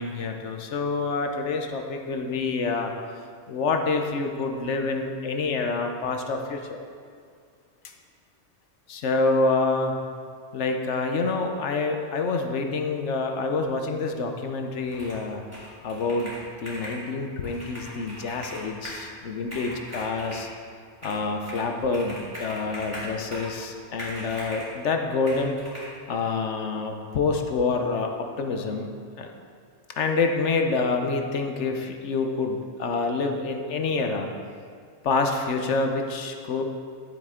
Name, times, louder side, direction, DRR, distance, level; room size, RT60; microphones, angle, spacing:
voice 1, 0.0-2.9 3.5-6.8 8.9-9.9 10.5-15.4 15.8-16.3 16.6-20.5 21.0-25.6 26.1-28.1 28.4-28.9 29.2-29.3 30.0-34.3 35.0-36.6, left 3 dB, 70° left, 4 dB, 1.1 m, -27 dB
Computer keyboard, 14.9-15.3 15.5-17.0 17.4-19.1 19.4-20.5 21.0-21.7 21.9-23.6 24.0-24.7 25.3-25.9, equal, 10° right, 2.8 m, -39 dB
11.5 x 7.7 x 3.7 m, 2.1 s
omnidirectional pair, 1.3 m